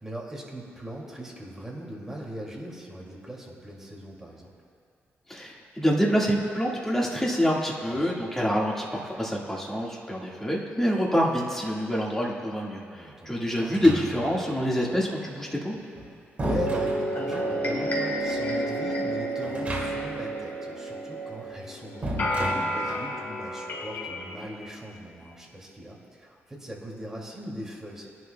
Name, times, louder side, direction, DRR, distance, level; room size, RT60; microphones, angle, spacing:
voice 1, 0.0-4.5 7.9-8.1 12.9-13.4 16.4-28.1, right 1 dB, 10° right, -3 dB, 2.4 m, -39 dB
voice 2, 5.3-15.7, equal, 10° left, -3 dB, 1.8 m, -26 dB
sound 1, 13.6-14.5 15.7-17.6 19.4-20.2 20.5-20.6 22.0-23.1, right 1 dB, 30° right, 2.2 m, -34 dB
sound 2, 16.4-24.6, right 1 dB, 50° left, 2.5 m, -30 dB
20.5 x 11.0 x 2.3 m, 2.3 s
cardioid pair, 110°, 4 cm